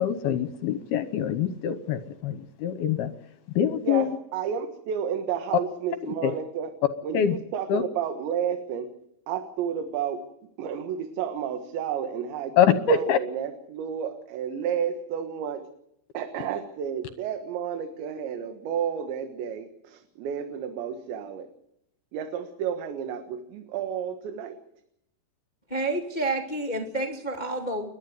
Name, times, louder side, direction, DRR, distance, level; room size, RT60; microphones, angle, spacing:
voice 1, 0.0-3.1 3.6-4.1 6.0-6.3 7.1-7.4 7.7-7.8 12.6-13.2, left 7 dB, 70° left, 11 dB, 2.5 m, -24 dB
voice 2, 3.8-6.7 7.0-8.9 9.3-10.2 10.6-15.7 16.1-21.5 22.1-24.6, right 8 dB, 75° right, 7 dB, 3.7 m, -31 dB
voice 3, 25.7-27.9, right 2 dB, 40° left, 3 dB, 0.6 m, -29 dB
30.0 x 12.0 x 9.5 m, 0.79 s
omnidirectional pair, 5.3 m